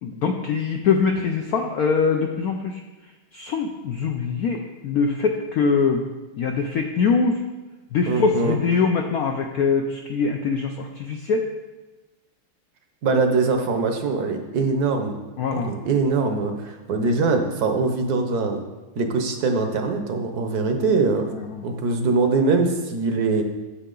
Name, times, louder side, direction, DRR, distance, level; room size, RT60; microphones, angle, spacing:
voice 1, 0.0-2.8 3.3-6.0 6.4-7.4 7.9-11.5 15.4-15.7 21.3-21.6, left 5 dB, 85° left, 3 dB, 0.8 m, -23 dB
voice 2, 8.1-8.6 13.0-15.2 15.5-18.6 19.0-21.3 21.6-23.4, right 3 dB, 65° right, 5 dB, 1.1 m, -22 dB
8.5 x 6.8 x 3.8 m, 1.2 s
omnidirectional pair, 2.2 m